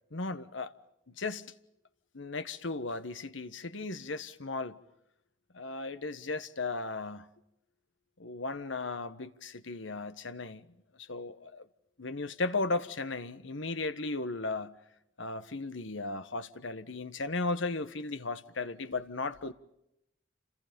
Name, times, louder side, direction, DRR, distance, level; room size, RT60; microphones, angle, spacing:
voice 1, 0.1-0.7 1.1-1.5 2.1-4.8 5.5-7.3 8.2-10.7 11.0-11.7 12.0-14.7 15.2-19.5, left 3 dB, 75° left, 1.4 m, -36 dB
29.0 x 27.0 x 5.3 m
head